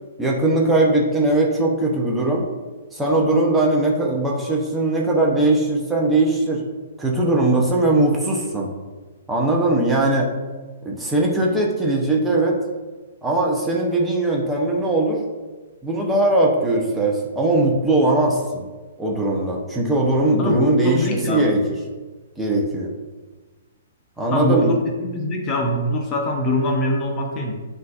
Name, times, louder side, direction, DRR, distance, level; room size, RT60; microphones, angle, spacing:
voice 1, 0.2-2.4 2.9-6.6 7.0-8.7 9.3-10.3 10.8-12.6 13.2-15.2 15.8-18.6 19.0-21.6 22.4-22.9 24.2-24.7, right 2 dB, 5° right, -3 dB, 0.7 m, -20 dB
voice 2, 20.4-21.4 24.3-27.5, left 1 dB, 30° left, 1 dB, 0.7 m, -23 dB
7.5 x 2.6 x 2.5 m, 1.3 s
hypercardioid pair, 125°, 0 cm